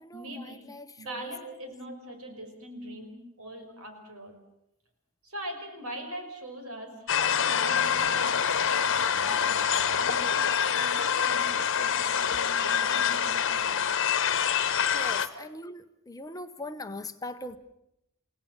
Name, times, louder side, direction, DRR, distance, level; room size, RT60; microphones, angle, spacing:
voice 1, 0.1-0.7 1.0-4.4 5.2-8.4 8.7-14.0 15.3-15.5, right 1 dB, 75° right, 5 dB, 5.5 m, -42 dB
voice 2, 0.7-1.3 1.6-1.7 14.9-17.6, left 1 dB, 15° left, 8 dB, 0.9 m, -40 dB
sound 1, 7.1-15.3, left 7 dB, 60° left, 1.2 m, -26 dB
29.5 x 17.5 x 7.3 m, 0.81 s
head